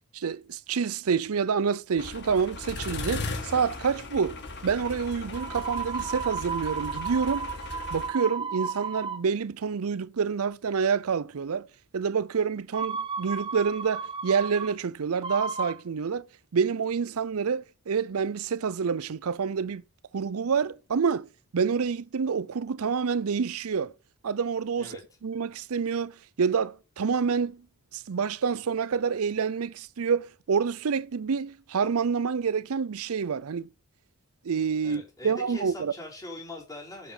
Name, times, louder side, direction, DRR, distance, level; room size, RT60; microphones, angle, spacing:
voice 1, 0.1-7.5 7.9-11.7 11.9-16.2 16.5-19.8 20.1-23.9 24.2-24.9 25.2-26.1 26.4-27.6 27.9-33.7 34.4-35.9, right 6 dB, 70° right, 0.5 m, -28 dB
sound 1, 2.0-8.1, left 3 dB, 50° left, 2.0 m, -37 dB
sound 2, 5.3-9.2 12.7-14.7 15.2-15.8, right 5 dB, 20° right, 0.7 m, -33 dB
voice 2, 34.8-37.1, left 1 dB, 15° left, 4.6 m, -42 dB
8.5 x 7.2 x 5.5 m
head